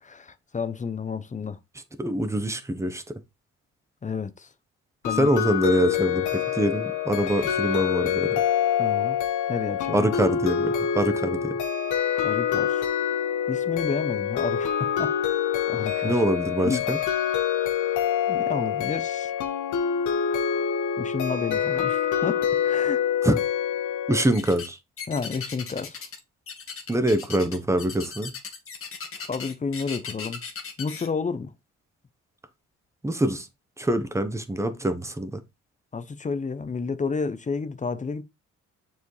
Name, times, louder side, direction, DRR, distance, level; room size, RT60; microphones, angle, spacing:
voice 1, 0.0-1.6 4.0-4.5 5.0-5.3 8.8-9.2 9.5-10.1 12.2-12.8 13.5-16.2 16.6-16.8 18.3-19.3 21.0-23.0 25.1-26.0 29.2-30.4 30.8-31.5 35.9-38.2, left 5 dB, 25° left, 0.7 m, -31 dB
voice 2, 2.0-3.2 5.1-8.4 9.9-11.6 16.0-17.0 23.2-23.4 24.1-24.8 26.9-28.3 33.0-33.5 33.8-35.4, right 1 dB, 10° right, 1.0 m, -24 dB
sound 1, 5.0-24.2, left 8 dB, 80° left, 1.0 m, -26 dB
sound 2, 24.3-24.7 25.0-26.2 26.5-31.1, left 6 dB, 45° left, 1.6 m, -37 dB
6.9 x 4.7 x 3.3 m
cardioid pair, 90°, 30 cm